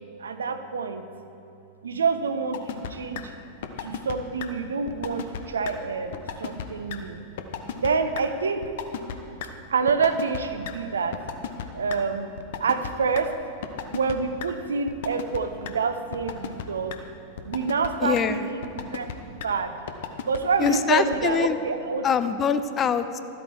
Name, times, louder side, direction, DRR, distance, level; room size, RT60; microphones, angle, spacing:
voice 1, 0.2-1.0 1.8-3.3 3.8-7.2 7.8-8.6 9.7-11.2 11.7-12.3 12.6-13.3 13.9-16.9 17.5-19.8 20.2-22.1, right 5 dB, 70° right, 9 dB, 0.7 m, -27 dB
sound 1, 2.5-2.9 3.2-3.3 3.6-4.1 4.4-4.5 4.9-5.4 5.7-5.8 6.1-6.6 6.9-7.0 7.4-7.9 8.1-8.2 8.6-9.2 9.4-9.5 9.9-10.7 11.1-12.0 12.4-13.2 13.6-14.1 14.4-14.5 14.9-15.4 15.7-15.8 16.1-16.6 16.9-17.0 17.4-17.9 18.2-18.3 18.6-19.1 19.4-19.5 19.9-20.4 20.7-20.8 21.1-21.2, left 9 dB, 55° left, 0.8 m, -33 dB
voice 2, 18.0-18.5 20.6-21.6 22.0-23.2, left 7 dB, 25° left, 11 dB, 0.5 m, -24 dB
13.0 x 8.4 x 4.6 m, 2.8 s
figure-of-eight pair, 90°, 0 cm